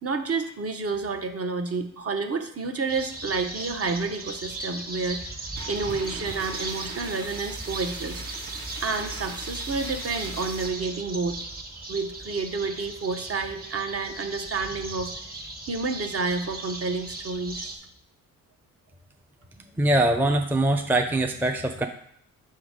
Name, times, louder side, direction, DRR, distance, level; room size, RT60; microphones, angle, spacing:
voice 1, 0.0-5.2 5.7-8.2 8.8-11.4 11.9-15.1 15.7-17.7, right 4 dB, 40° right, 5 dB, 0.9 m, -29 dB
sound 1, 2.9-17.8, right 2 dB, 25° right, 1.3 m, -37 dB
sound 2, 5.6-10.7, right 2 dB, 75° right, 1.7 m, -40 dB
voice 2, 19.8-21.9, right 1 dB, 5° right, 5 dB, 0.5 m, -22 dB
5.4 x 3.8 x 5.0 m, 0.69 s
supercardioid pair, 65°, 35 cm